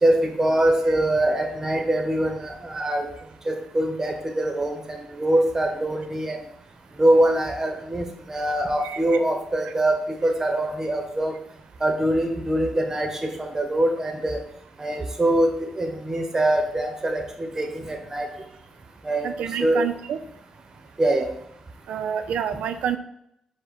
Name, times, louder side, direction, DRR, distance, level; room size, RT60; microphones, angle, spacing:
voice 1, 0.0-3.1 3.5-6.4 6.9-11.3 11.8-14.4 14.8-18.3 19.0-19.3 19.6-19.9 21.0-21.3, right 1 dB, 25° right, 5 dB, 0.8 m, -23 dB
voice 2, 19.2-20.2 21.9-23.0, right 8 dB, 85° right, 10 dB, 0.4 m, -28 dB
4.8 x 2.1 x 4.6 m, 0.75 s
cardioid pair, 80°, 2 cm